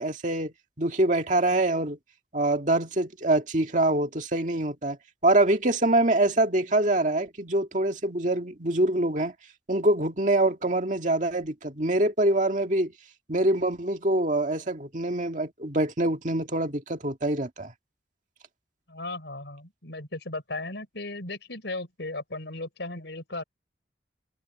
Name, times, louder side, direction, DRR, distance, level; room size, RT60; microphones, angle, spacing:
voice 1, 0.0-2.0 2.3-5.0 5.2-9.3 9.7-12.9 13.3-17.7, right 1 dB, 45° right, 2.0 m, -25 dB
voice 2, 18.9-23.4, left 2 dB, 80° left, 4.4 m, -36 dB
head